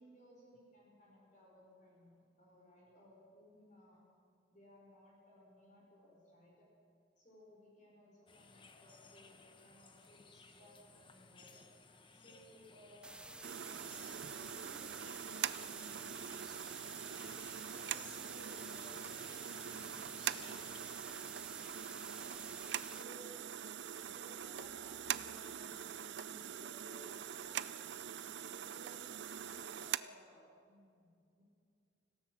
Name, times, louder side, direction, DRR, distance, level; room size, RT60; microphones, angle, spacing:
voice 1, 0.0-4.0 4.5-6.7 7.2-11.6 12.1-17.4 17.7-22.4 22.8-23.4 24.0-27.8 28.2-31.4, equal, 40° left, -3 dB, 5.2 m, -61 dB
sound 1, 8.3-21.0, left 4 dB, 25° left, 1.1 m, -60 dB
sound 2, 13.0-23.0, right 2 dB, 5° right, 0.5 m, -52 dB
sound 3, 13.4-30.0, right 9 dB, 65° right, 0.5 m, -43 dB
26.0 x 17.0 x 6.4 m, 2.4 s
head